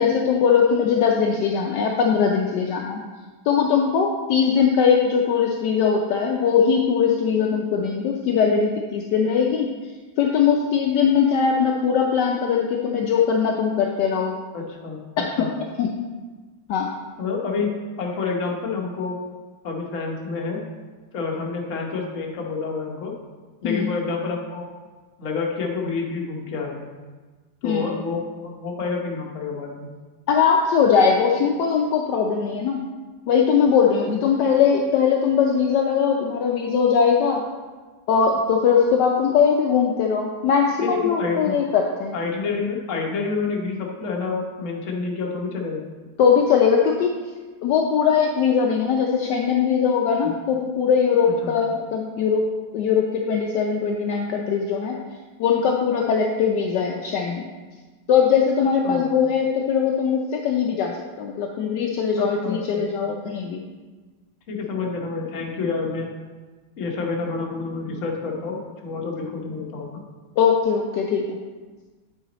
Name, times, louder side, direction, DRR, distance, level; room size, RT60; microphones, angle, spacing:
voice 1, 0.0-3.0 3.5-9.7 10.2-14.3 15.2-15.5 15.8-15.9 16.7-16.9 23.6-23.9 27.6-27.9 30.3-32.8 33.3-37.4 38.1-42.1 46.2-47.1 47.6-55.0 55.4-57.5 58.1-63.6 70.4-71.2, left 6 dB, 75° left, 1 dB, 1.2 m, -20 dB
voice 2, 14.5-15.5 17.2-19.2 19.6-20.6 21.1-23.1 23.6-24.7 25.2-26.9 27.6-29.9 34.1-34.2 40.8-41.6 42.1-45.9 50.2-50.3 51.4-51.6 58.8-59.1 62.2-62.9 64.5-66.1 66.8-70.0, left 4 dB, 50° left, 0 dB, 1.3 m, -28 dB
8.8 x 5.0 x 4.1 m, 1.3 s
omnidirectional pair, 2.0 m